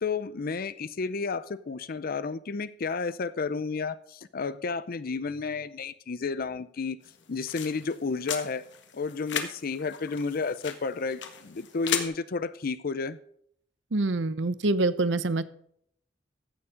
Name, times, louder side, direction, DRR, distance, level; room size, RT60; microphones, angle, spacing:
voice 1, 0.0-7.0 7.3-8.6 8.9-13.2, left 4 dB, 55° left, 0.5 m, -32 dB
sound 1, 7.0-12.0, left 7 dB, 75° left, 1.6 m, -37 dB
voice 2, 13.9-15.4, right 2 dB, 80° right, 0.8 m, -25 dB
15.0 x 7.1 x 5.0 m
head